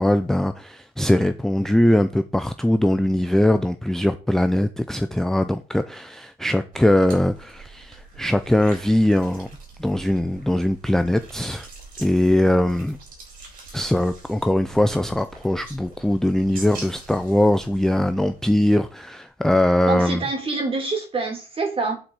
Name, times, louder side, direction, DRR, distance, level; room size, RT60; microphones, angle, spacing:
voice 1, 0.0-9.5 9.8-11.7 12.0-13.0 13.7-20.2, left 1 dB, 5° left, 0.4 m, -21 dB
sound 1, 6.7-18.9, right 3 dB, 60° right, 4.0 m, -44 dB
voice 2, 19.9-22.0, right 3 dB, 35° right, 2.8 m, -26 dB
8.7 x 4.3 x 4.8 m
cardioid pair, 110°, 17 cm